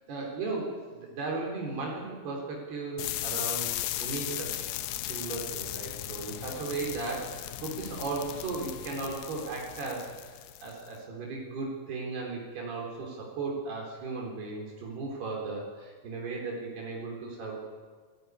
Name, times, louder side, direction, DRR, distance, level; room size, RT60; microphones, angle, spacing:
voice 1, 0.1-3.7 4.0-4.7 5.0-17.6, right 3 dB, 80° right, -2 dB, 5.8 m, -36 dB
sound 1, 3.0-10.9, left 13 dB, 75° left, 2.6 m, -36 dB
28.5 x 16.0 x 9.6 m, 1.5 s
omnidirectional pair, 4.5 m